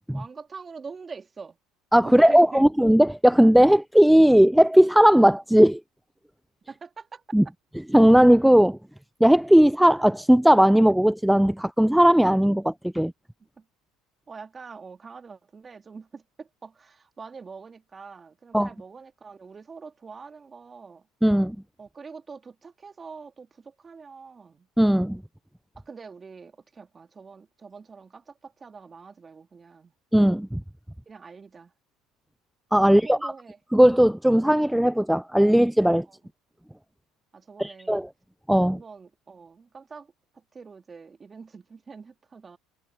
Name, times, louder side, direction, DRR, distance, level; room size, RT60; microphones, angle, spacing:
voice 1, 0.1-1.6 2.0-2.7 6.7-7.2 13.6-13.7 14.3-21.1 21.8-24.7 25.8-29.9 31.1-31.7 32.8-33.6 36.1-36.2 37.3-38.1 38.7-42.6, right 5 dB, 30° right, 3.0 m, -44 dB
voice 2, 1.9-5.8 7.3-7.4 7.9-8.8 9.2-13.1 18.5-18.7 21.2-21.6 24.8-25.2 30.1-30.6 32.7-33.3 33.7-36.1 37.6-38.1 38.5-38.8, equal, 5° right, 0.4 m, -17 dB
hypercardioid pair, 80°, 0 cm